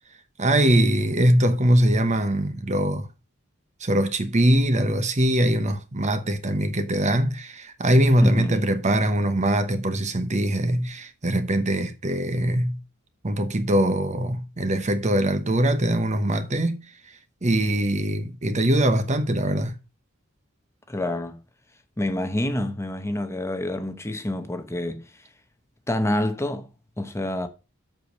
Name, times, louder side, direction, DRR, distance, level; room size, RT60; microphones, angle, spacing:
voice 1, 0.4-3.1 3.8-12.8 13.2-16.8 17.4-19.8, right 1 dB, 35° right, 1.0 m, -22 dB
voice 2, 8.2-8.6 20.9-21.4 22.0-25.1 25.9-26.7 27.0-27.5, left 1 dB, 15° left, 0.8 m, -27 dB
7.9 x 4.9 x 5.1 m
head